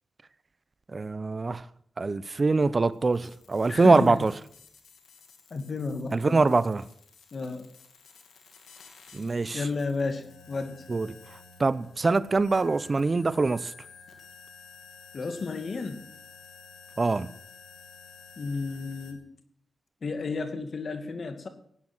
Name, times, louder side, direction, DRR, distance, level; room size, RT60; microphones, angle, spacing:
voice 1, 0.9-1.7 2.0-4.3 6.1-6.8 9.1-9.6 10.9-11.1 11.6-13.7 17.0-17.3, right 3 dB, 45° right, 0.8 m, -24 dB
sound 1, 2.8-19.1, left 5 dB, 80° left, 2.5 m, -52 dB
voice 2, 3.7-4.2 5.5-6.4 7.3-7.7 9.5-10.8 15.1-16.1 18.4-19.3 20.0-21.5, left 4 dB, 60° left, 2.2 m, -32 dB
17.0 x 9.7 x 6.3 m
supercardioid pair, 45°, 0 cm